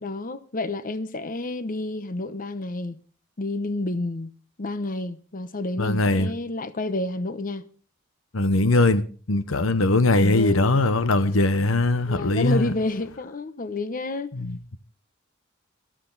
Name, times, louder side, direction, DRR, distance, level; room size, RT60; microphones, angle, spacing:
voice 1, 0.0-3.0 3.4-4.3 4.6-7.6 10.1-10.7 12.1-14.3, left 2 dB, 45° left, 0.9 m, -29 dB
voice 2, 5.8-6.3 8.3-12.7 14.3-14.8, left 2 dB, 90° left, 1.0 m, -21 dB
18.5 x 13.0 x 4.0 m
head